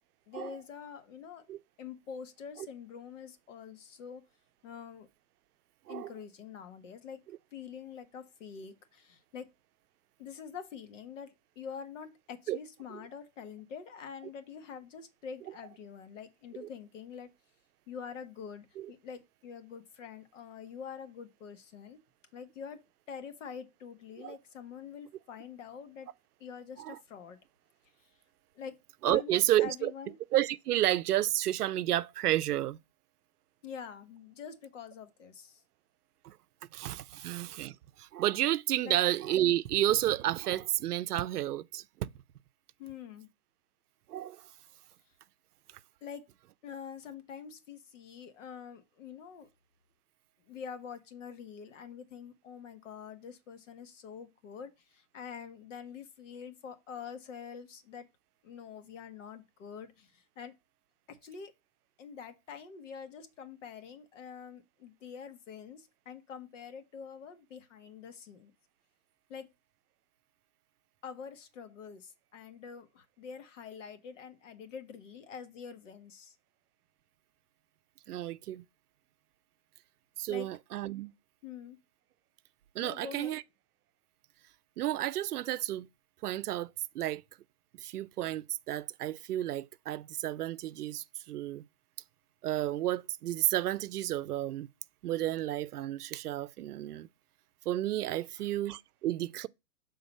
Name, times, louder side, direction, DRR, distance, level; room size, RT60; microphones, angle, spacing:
voice 1, 0.3-1.4 1.8-4.2 4.6-5.1 5.9-7.2 7.5-9.5 10.2-17.3 17.9-22.0 22.3-26.1 26.4-27.4 28.0-28.1 28.5-28.8 29.1-30.2 33.6-35.6 37.1-37.3 38.8-39.0 42.8-43.3 46.0-46.3 46.6-49.5 50.4-58.1 58.4-60.5 61.1-61.5 62.0-68.5 69.3-69.5 71.0-76.4 80.3-80.5 81.4-81.8 82.8-83.4 98.3-98.4, left 7 dB, 55° left, 1.3 m, -46 dB
voice 2, 29.0-29.9 30.3-32.8 36.2-36.4 36.7-42.1 44.1-44.4 78.1-78.6 80.2-81.1 82.7-83.4 84.8-85.9 86.2-87.2 87.8-91.6 92.4-94.7 95.0-97.1 97.7-99.5, right 13 dB, 85° right, 0.6 m, -31 dB
6.9 x 3.9 x 5.3 m
hypercardioid pair, 165°, 45 cm